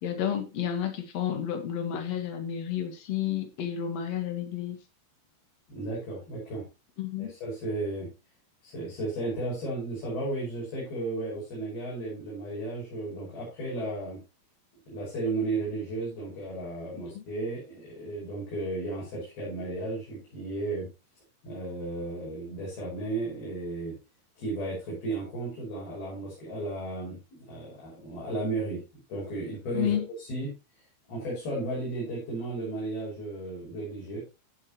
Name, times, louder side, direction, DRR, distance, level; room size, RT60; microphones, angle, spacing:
voice 1, 0.0-4.8 7.0-7.3 17.1-17.2 29.7-30.1, left 9 dB, 50° left, 2.6 m, -31 dB
voice 2, 5.7-6.6 7.2-8.1 8.6-14.2 14.9-20.9 21.4-24.0 24.4-28.8 29.1-30.5 31.1-34.2, right 2 dB, 65° left, 7.5 m, -34 dB
16.0 x 7.5 x 3.0 m
omnidirectional pair, 4.7 m